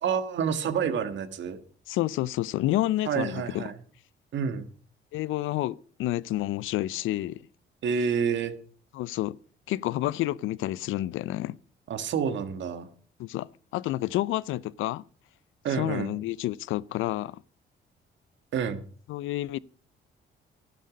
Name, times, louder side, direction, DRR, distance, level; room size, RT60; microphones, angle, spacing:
voice 1, 0.0-1.6 3.1-3.7 4.3-4.7 7.8-8.5 11.9-12.9 15.6-16.1 18.5-18.8, right 7 dB, 70° right, 1.7 m, -28 dB
voice 2, 1.9-3.6 5.1-7.4 8.9-9.4 9.7-11.6 13.2-13.5 13.7-15.0 15.8-17.4 19.1-19.6, left 15 dB, 85° left, 0.5 m, -29 dB
12.0 x 11.0 x 5.2 m
cardioid pair, 90°, 20 cm